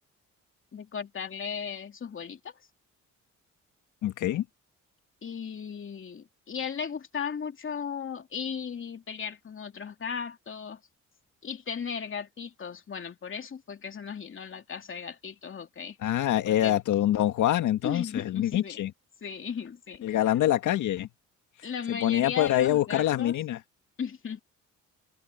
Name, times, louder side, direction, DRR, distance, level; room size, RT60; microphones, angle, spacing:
voice 1, 0.7-2.6 5.2-10.8 11.4-16.0 16.4-16.8 17.8-18.8 19.2-20.2 21.6-23.3 24.0-24.4, left 7 dB, 40° left, 2.8 m, -36 dB
voice 2, 4.0-4.4 16.0-18.9 20.0-21.1 21.9-23.6, left 12 dB, 75° left, 1.8 m, -25 dB
cardioid pair, 90°, 30 cm